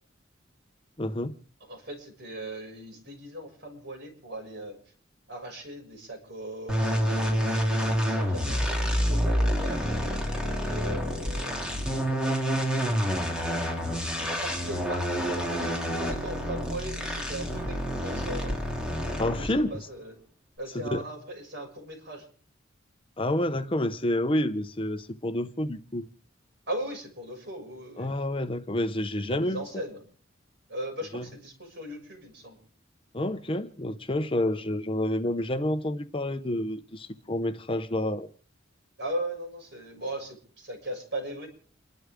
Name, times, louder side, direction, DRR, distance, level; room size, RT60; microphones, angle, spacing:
voice 1, 1.0-1.3 19.2-19.7 20.7-21.0 23.2-26.1 28.0-29.6 31.1-31.2 33.1-38.3, left 1 dB, 30° left, 0.8 m, -29 dB
voice 2, 1.7-4.8 5.3-9.9 10.6-15.7 16.0-18.6 19.4-20.1 20.6-22.2 26.7-28.1 29.2-30.0 30.7-32.6 39.0-41.5, right 1 dB, 60° right, 6.6 m, -39 dB
sound 1, 6.7-19.7, equal, 5° right, 3.3 m, -28 dB
29.0 x 12.0 x 3.7 m
head